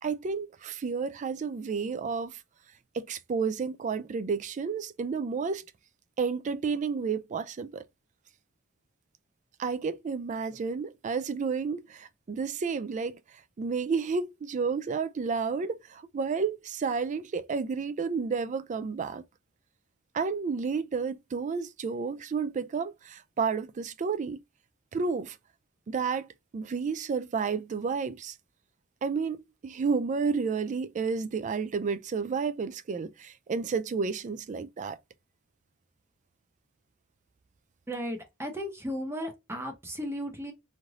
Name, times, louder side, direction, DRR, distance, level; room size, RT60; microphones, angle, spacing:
voice 1, 0.0-2.4 2.9-5.6 6.2-7.8 9.6-13.2 13.6-19.2 20.1-24.4 24.9-25.4 25.9-28.4 29.0-29.4 29.6-35.0, right 5 dB, 35° right, 0.3 m, -31 dB
voice 2, 37.9-40.5, equal, 10° right, 0.9 m, -35 dB
3.2 x 2.6 x 2.4 m
head